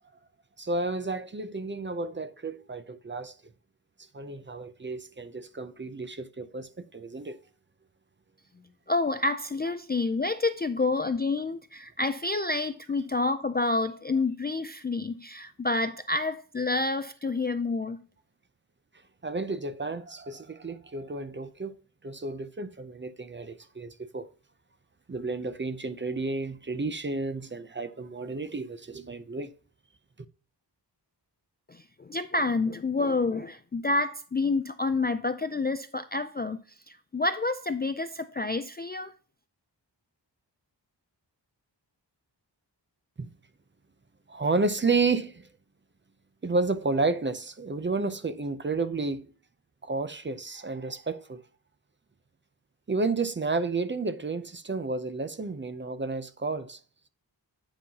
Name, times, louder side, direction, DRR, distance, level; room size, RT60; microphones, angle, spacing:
voice 1, 0.6-3.4 4.1-7.4 19.2-21.7 22.0-24.3 25.1-29.5 43.2-43.3 44.3-45.5 46.4-49.3 49.8-51.4 52.9-56.8, right 3 dB, 25° right, 0.5 m, -31 dB
voice 2, 8.9-18.0 31.7-36.6 36.9-39.1, left 3 dB, 25° left, 0.3 m, -28 dB
9.8 x 5.5 x 2.8 m
wide cardioid pair, 140°, 43 cm